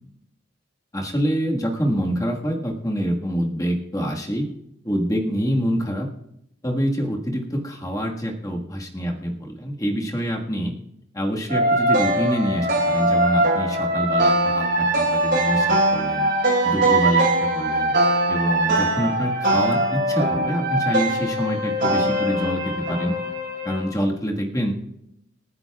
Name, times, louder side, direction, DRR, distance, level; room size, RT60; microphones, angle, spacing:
voice 1, 0.9-4.5 4.8-6.1 6.6-10.7 11.1-16.3 16.6-17.9 18.3-23.1 23.6-24.7, equal, 15° left, 0 dB, 1.6 m, -26 dB
sound 1, 11.5-23.9, right 1 dB, 50° right, 4.9 m, -21 dB
27.5 x 9.5 x 2.4 m, 0.80 s
head